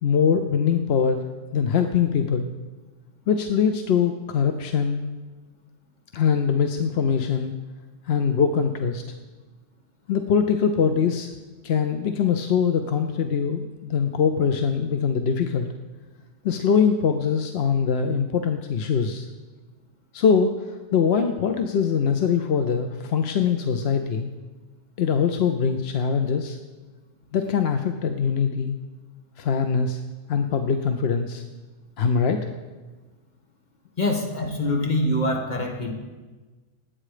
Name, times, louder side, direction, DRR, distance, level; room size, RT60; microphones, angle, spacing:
voice 1, 0.0-1.2 1.5-2.5 3.3-5.0 6.1-7.5 8.0-9.0 10.1-11.3 11.6-15.7 16.4-19.3 20.1-24.3 25.0-26.6 27.3-28.7 29.4-30.0 30.3-31.4 32.0-32.5, left 6 dB, 55° left, 7 dB, 0.8 m, -22 dB
voice 2, 34.0-35.9, left 1 dB, 30° left, 1 dB, 1.8 m, -24 dB
19.0 x 8.7 x 5.0 m, 1.3 s
omnidirectional pair, 1.4 m